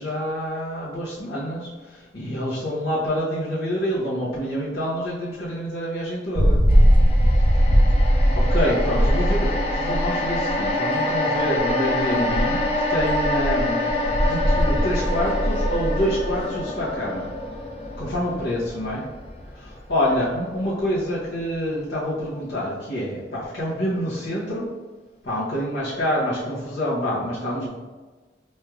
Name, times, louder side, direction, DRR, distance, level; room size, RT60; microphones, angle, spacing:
voice 1, 0.0-6.6 8.3-17.3 18.0-19.0 19.5-24.7 25.2-27.7, equal, 75° left, -8 dB, 0.9 m, -27 dB
sound 1, 6.4-10.7 11.6-11.7 12.3-16.6, equal, 25° right, 0.4 m, -20 dB
sound 2, 6.7-21.0 21.4-21.5, left 2 dB, 35° left, 0.5 m, -27 dB
4.4 x 3.2 x 2.3 m, 1.3 s
head